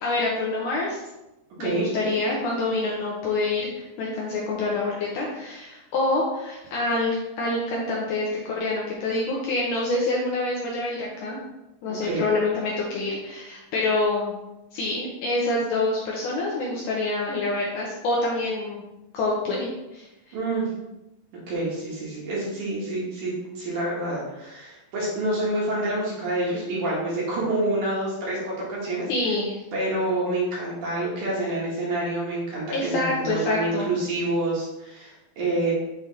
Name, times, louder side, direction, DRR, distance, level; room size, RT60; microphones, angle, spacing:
voice 1, 0.0-1.0 1.6-11.4 11.8-14.3 14.7-18.8 19.1-20.4 29.1-29.6 32.7-33.9, left 2 dB, 75° left, -3 dB, 2.0 m, -26 dB
voice 2, 11.9-12.2 20.3-20.7 21.5-29.1 29.7-35.7, right 2 dB, 60° right, -6 dB, 2.8 m, -27 dB
7.4 x 3.5 x 4.3 m, 0.96 s
omnidirectional pair, 4.4 m